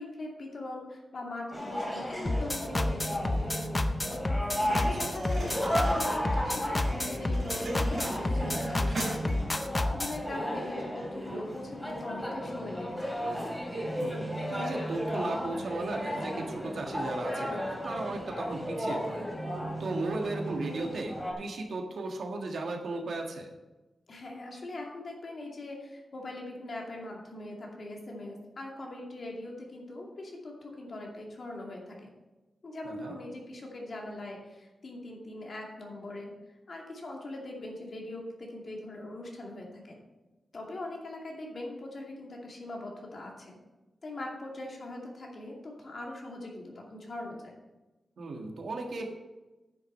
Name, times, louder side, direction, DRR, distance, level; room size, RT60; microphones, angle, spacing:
voice 1, 0.0-4.2 4.7-13.1 24.1-32.1 32.6-36.3 36.7-40.0 40.5-43.6 44.0-47.5, left 2 dB, 50° left, -1 dB, 2.4 m, -41 dB
sound 1, 1.5-21.3, equal, 5° left, 2.6 m, -34 dB
sound 2, 2.3-10.2, left 2 dB, 20° left, 0.6 m, -30 dB
sound 3, 4.6-9.6, right 1 dB, 45° right, 3.5 m, -40 dB
voice 2, 14.0-19.3 19.8-23.5 32.8-33.1 48.2-49.0, right 2 dB, 80° right, 1 dB, 1.6 m, -36 dB
9.5 x 7.8 x 5.5 m, 1.1 s
wide cardioid pair, 145°, 0 cm